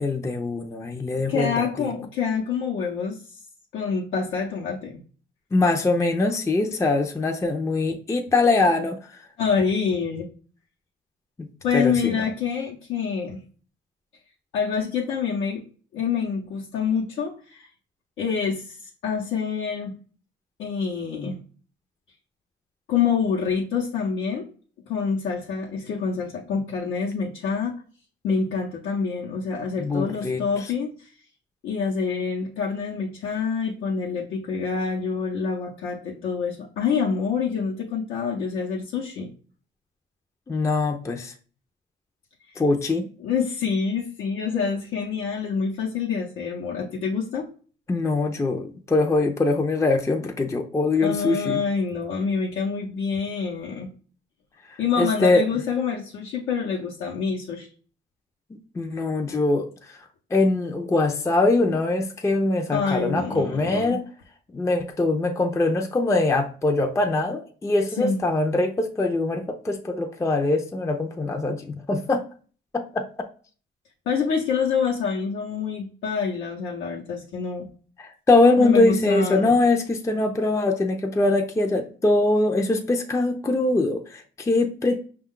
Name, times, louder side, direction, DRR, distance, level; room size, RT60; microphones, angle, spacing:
voice 1, 0.0-1.9 5.5-9.3 11.7-12.2 29.8-30.7 40.5-41.3 42.6-43.1 47.9-51.6 55.0-55.4 58.5-64.0 64.5-72.2 72.7-73.1 78.0-85.0, left 2 dB, 15° left, 4 dB, 0.4 m, -23 dB
voice 2, 1.3-3.4 3.7-5.0 9.4-10.3 11.6-13.4 14.5-15.6 15.9-17.7 18.2-20.0 20.6-21.4 22.9-24.5 24.9-27.7 28.2-31.1 31.6-39.3 42.5-42.6 43.2-47.5 51.0-53.9 54.8-57.7 62.7-64.0 68.0-68.2 74.1-77.7 78.6-79.6, left 6 dB, 85° left, -3 dB, 0.7 m, -26 dB
5.3 x 2.3 x 3.6 m, 0.41 s
cardioid pair, 90°, 20 cm